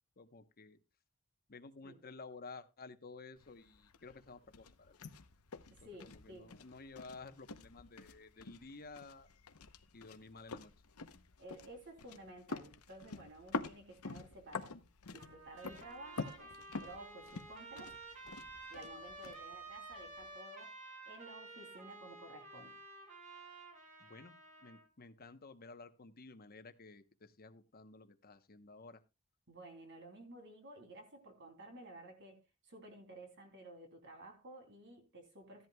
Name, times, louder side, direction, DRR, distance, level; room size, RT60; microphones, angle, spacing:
voice 1, 0.2-0.8 1.5-5.0 6.0-9.3 9.9-10.7 24.0-29.0, left 3 dB, 45° left, 1.0 m, -53 dB
sound 1, 3.4-20.4, left 4 dB, 85° left, 0.9 m, -48 dB
voice 2, 5.7-6.5 11.4-14.8 15.1-17.9 18.7-20.7 21.1-22.8 29.5-35.7, right 1 dB, 55° right, 3.1 m, -53 dB
Trumpet, 15.2-24.9, right 3 dB, 35° right, 4.3 m, -52 dB
15.0 x 11.0 x 2.3 m
head